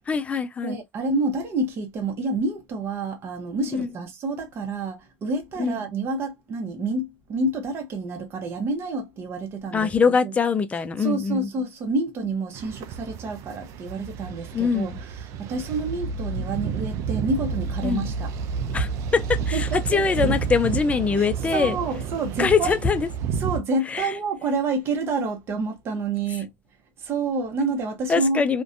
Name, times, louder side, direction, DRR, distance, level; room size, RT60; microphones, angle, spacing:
voice 1, 0.1-0.8 3.7-3.9 5.6-5.8 9.7-11.5 14.5-15.0 17.8-18.1 18.7-21.8 22.4-23.1 23.9-24.1 28.1-28.6, left 5 dB, 25° left, 0.4 m, -23 dB
voice 2, 0.6-9.9 10.2-10.3 11.0-14.9 15.4-18.3 19.5-20.0 21.2-21.3 21.5-22.8 23.4-26.5 27.0-28.4, right 3 dB, 45° right, 0.8 m, -28 dB
sound 1, 12.5-23.6, right 6 dB, 65° right, 0.4 m, -30 dB
2.5 x 2.2 x 2.4 m
supercardioid pair, 105°, 6 cm